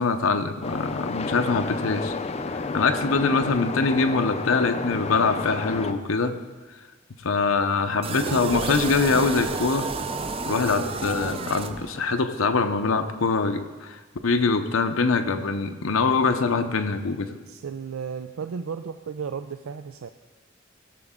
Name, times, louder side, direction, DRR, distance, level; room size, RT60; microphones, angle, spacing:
voice 1, 0.0-2.1 2.5-6.4 7.2-9.9 10.5-17.4, left 4 dB, 90° left, 8 dB, 0.7 m, -24 dB
sound 1, 0.6-5.9, left 3 dB, 30° left, 0.5 m, -31 dB
sound 2, 8.0-12.2, right 3 dB, 30° right, 0.5 m, -30 dB
voice 2, 17.5-20.1, right 6 dB, 85° right, 9 dB, 0.4 m, -34 dB
17.0 x 7.0 x 3.7 m, 1.3 s
head